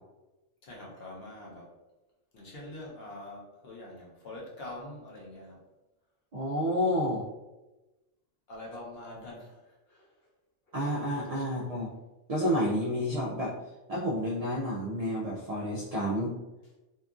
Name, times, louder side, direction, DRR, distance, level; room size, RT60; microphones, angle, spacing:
voice 1, 0.6-1.7 2.3-5.6 8.5-10.1 11.3-11.8, left 1 dB, 60° left, -3 dB, 0.9 m, -45 dB
voice 2, 6.3-7.3 10.7-11.9 12.3-13.5 13.9-16.3, equal, 75° right, -4 dB, 0.3 m, -30 dB
2.9 x 2.4 x 2.4 m, 1.1 s
omnidirectional pair, 1.3 m